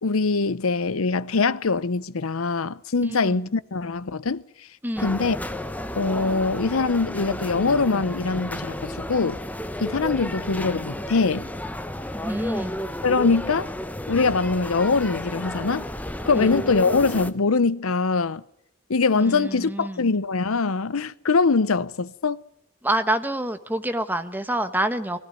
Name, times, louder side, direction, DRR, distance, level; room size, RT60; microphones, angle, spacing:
voice 1, 0.0-4.4 5.0-5.4 6.0-9.4 9.8-11.5 13.0-13.7 14.1-15.9 16.2-18.4 18.9-22.4, left 4 dB, 85° left, 0.8 m, -23 dB
voice 2, 4.8-5.2 12.1-12.8 16.3-16.5 19.2-20.0 22.8-25.2, right 1 dB, 10° right, 1.2 m, -27 dB
sound 1, 5.0-17.3, left 1 dB, 5° left, 0.9 m, -32 dB
20.5 x 15.0 x 9.2 m
head